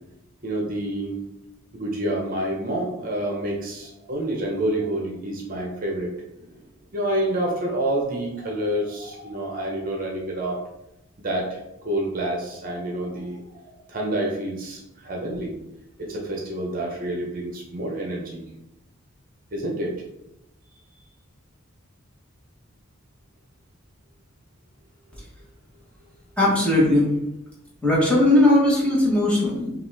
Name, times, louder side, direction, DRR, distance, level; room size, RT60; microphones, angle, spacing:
voice 1, 0.4-1.2 1.7-6.5 6.9-10.6 11.2-13.6 13.9-15.6 16.0-18.4 19.5-19.9, right 1 dB, 45° right, 0 dB, 0.8 m, -28 dB
voice 2, 26.4-27.1 27.8-29.7, left 1 dB, 5° left, -5 dB, 1.3 m, -18 dB
5.8 x 2.5 x 3.4 m, 0.88 s
head